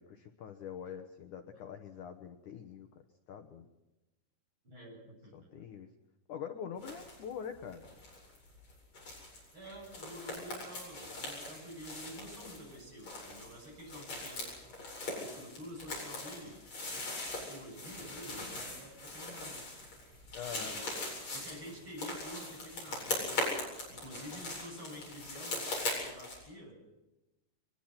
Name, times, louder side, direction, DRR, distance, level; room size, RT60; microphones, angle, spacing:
voice 1, 0.0-2.9 3.3-3.7 5.3-5.9 6.3-7.9 20.3-20.8, left 7 dB, 65° left, 6 dB, 2.1 m, -44 dB
voice 2, 4.6-5.7 9.5-14.5 15.1-16.6 17.1-19.6 20.5-23.5 23.9-26.8, equal, 25° right, 0 dB, 8.5 m, -49 dB
sound 1, 6.8-7.2 7.5-26.4, left 2 dB, 35° left, 9.3 m, -41 dB
23.5 x 22.5 x 6.0 m, 0.97 s
omnidirectional pair, 5.1 m